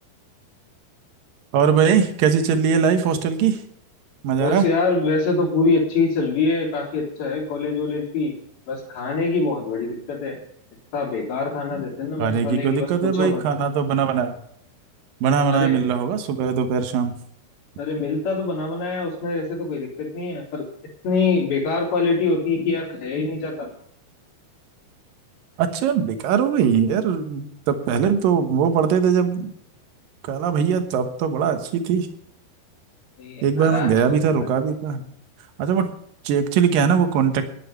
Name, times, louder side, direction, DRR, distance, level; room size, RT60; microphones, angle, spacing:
voice 1, 1.5-3.6 4.2-4.6 12.2-14.4 15.2-17.1 25.6-29.5 30.2-32.1 33.4-35.0 35.6-35.9 36.2-37.5, right 7 dB, 65° right, 8 dB, 2.7 m, -20 dB
voice 2, 4.4-8.3 8.7-10.4 10.9-13.4 15.5-15.8 17.8-20.7 21.0-23.7 33.2-34.2, left 4 dB, 70° left, -7 dB, 4.8 m, -24 dB
11.0 x 9.3 x 7.0 m, 0.70 s
omnidirectional pair, 4.6 m